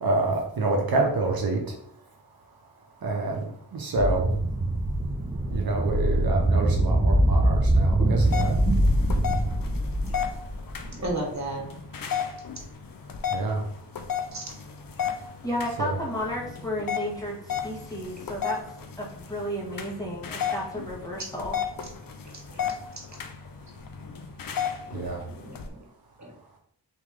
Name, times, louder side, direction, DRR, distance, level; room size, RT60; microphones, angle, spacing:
voice 1, 0.0-1.6 3.0-3.4 3.7-4.2 5.5-8.5 13.3-13.6 15.8-16.0 24.9-25.2, right 3 dB, 60° right, 0 dB, 0.9 m, -27 dB
sound 1, 4.0-11.1, right 1 dB, 15° right, 0.5 m, -23 dB
sound 2, 8.2-25.7, left 8 dB, 60° left, 0.6 m, -34 dB
voice 2, 10.8-11.6 14.3-14.4 18.2-18.3 22.2-22.6 25.2-25.7 26.2-26.3, right 2 dB, 45° right, 0 dB, 1.3 m, -34 dB
voice 3, 15.4-18.6 19.0-21.6, equal, 10° left, -4 dB, 1.4 m, -32 dB
3.9 x 3.0 x 3.7 m, 0.66 s
cardioid pair, 65°, 40 cm